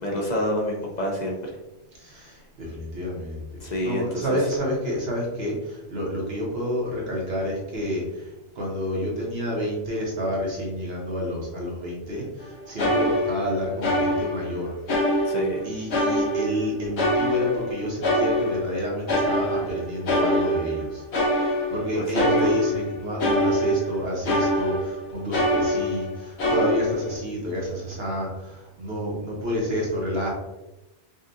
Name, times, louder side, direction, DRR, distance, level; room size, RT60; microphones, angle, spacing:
voice 1, 0.0-1.6 3.6-4.5 15.3-15.6 22.0-22.5, equal, 50° left, -1 dB, 0.6 m, -28 dB
voice 2, 2.0-14.8 15.6-21.0 21.7-30.3, equal, 60° right, -3 dB, 1.3 m, -29 dB
sound 1, 12.4-12.5 12.8-14.5 14.9-15.6 15.9-18.8 19.1-25.0 25.3-26.1 26.4-27.1, equal, 65° left, 1.1 m, -24 dB
5.3 x 2.4 x 2.6 m, 1.0 s
omnidirectional pair, 1.2 m